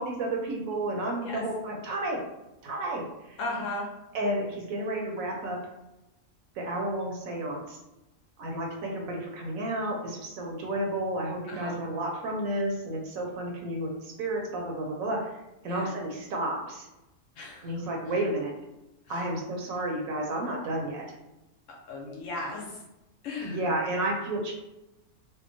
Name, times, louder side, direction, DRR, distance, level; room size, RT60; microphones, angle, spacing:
voice 1, 0.0-2.2 2.6-3.4 4.1-5.6 6.5-7.8 8.4-15.3 15.6-16.9 17.6-18.5 19.1-21.0 23.4-24.5, right 1 dB, 75° right, 0 dB, 1.0 m, -31 dB
voice 2, 3.4-3.9 11.5-11.8 15.6-15.9 17.4-17.9 19.1-19.3 21.9-22.8 23.2-23.6, left 2 dB, 65° left, -2 dB, 0.9 m, -36 dB
2.7 x 2.2 x 2.5 m, 0.95 s
omnidirectional pair, 1.5 m